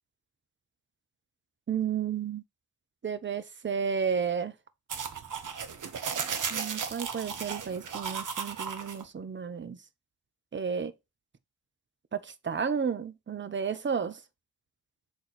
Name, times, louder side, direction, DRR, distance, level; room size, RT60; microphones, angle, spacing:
voice 1, 1.7-2.4 3.0-4.5 6.5-9.8 10.5-10.9 12.1-14.2, right 6 dB, 25° right, 0.8 m, -32 dB
sound 1, 4.9-9.0, right 6 dB, 45° right, 1.1 m, -35 dB
6.2 x 3.9 x 4.1 m
hypercardioid pair, 45°, 45 cm